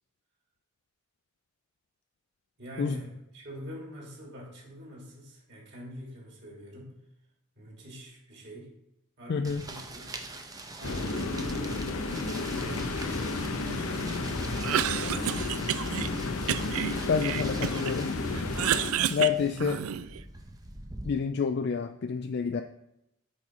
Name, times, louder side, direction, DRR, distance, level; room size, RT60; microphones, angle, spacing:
voice 1, 2.6-3.1 3.3-7.0 7.6-8.7 9.2-10.0 10.8-11.8 12.6-15.4 19.4-20.1, equal, 55° right, -3 dB, 2.8 m, -44 dB
voice 2, 9.3-9.6 17.1-18.1 19.1-19.8 21.0-22.6, left 6 dB, 50° left, 7 dB, 0.3 m, -28 dB
sound 1, 9.4-21.1, right 2 dB, 20° right, 0.7 m, -45 dB
sound 2, 10.8-18.9, left 3 dB, 90° left, 0.8 m, -32 dB
Cough, 14.5-16.1 16.5-18.0 18.3-20.2, right 10 dB, 85° right, 0.4 m, -30 dB
8.5 x 4.3 x 4.6 m, 0.83 s
head